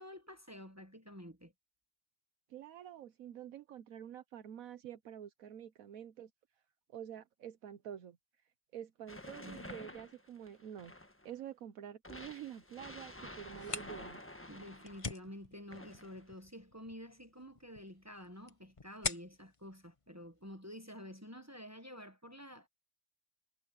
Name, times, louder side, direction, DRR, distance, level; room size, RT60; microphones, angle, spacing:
voice 1, 0.0-1.5 9.4-9.7 14.5-22.7, equal, 10° right, 1.2 m, -50 dB
voice 2, 2.5-6.3 6.9-8.2 8.7-10.9 11.2-14.2, right 10 dB, 75° right, 1.3 m, -48 dB
sound 1, 9.1-11.3 12.0-15.2 15.7-16.3, left 1 dB, 10° left, 1.3 m, -50 dB
sound 2, 13.4-20.9, left 4 dB, 25° left, 1.0 m, -46 dB
omnidirectional pair, 1.5 m